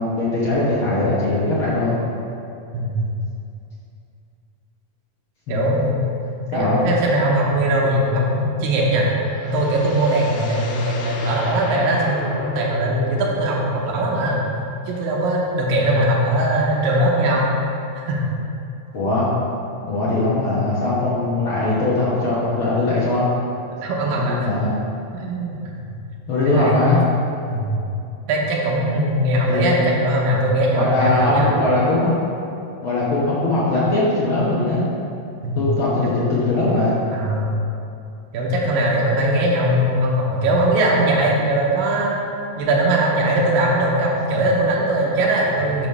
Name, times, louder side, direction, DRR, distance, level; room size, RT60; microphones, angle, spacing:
voice 1, 0.0-1.9 5.5-5.6 6.5-6.8 18.9-19.3 19.9-23.2 24.1-24.8 26.3-27.0 29.5-29.9 30.7-32.2 32.8-34.8 35.5-36.9, left 2 dB, 70° left, -8 dB, 1.2 m, -20 dB
voice 2, 5.5-6.0 6.3-9.1 9.4-14.4 14.9-17.5 18.0-18.2 23.8-24.5 25.1-25.6 26.4-27.1 27.5-27.7 28.3-31.5 35.4-35.6 37.1-37.6 38.3-42.2 42.6-45.9, right 1 dB, 85° right, -2 dB, 2.6 m, -20 dB
sound 1, 8.7-13.8, left 3 dB, 90° left, 2.4 m, -35 dB
6.3 x 5.0 x 5.4 m, 2.7 s
omnidirectional pair, 3.9 m